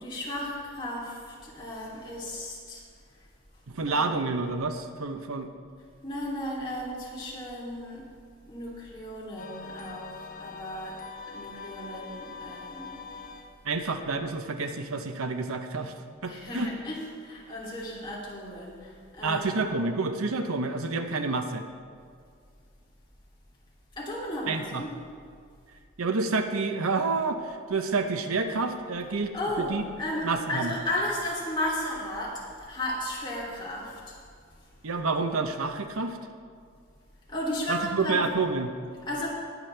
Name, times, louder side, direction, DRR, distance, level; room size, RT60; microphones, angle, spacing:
voice 1, 0.0-2.8 3.9-4.1 6.0-8.1 8.5-11.0 11.3-13.0 16.2-19.6 24.0-24.9 29.3-29.7 30.0-34.2 37.3-38.2 39.1-39.3, left 1 dB, 25° left, -6 dB, 3.0 m, -34 dB
voice 2, 3.7-5.5 13.6-15.9 16.2-16.7 19.2-21.6 24.5-24.8 26.0-29.8 30.2-30.7 34.8-36.2 37.7-38.7, right 3 dB, 80° right, 7 dB, 0.8 m, -29 dB
sound 1, 9.4-13.7, left 5 dB, 40° left, 0.9 m, -43 dB
21.0 x 8.2 x 3.4 m, 2.2 s
head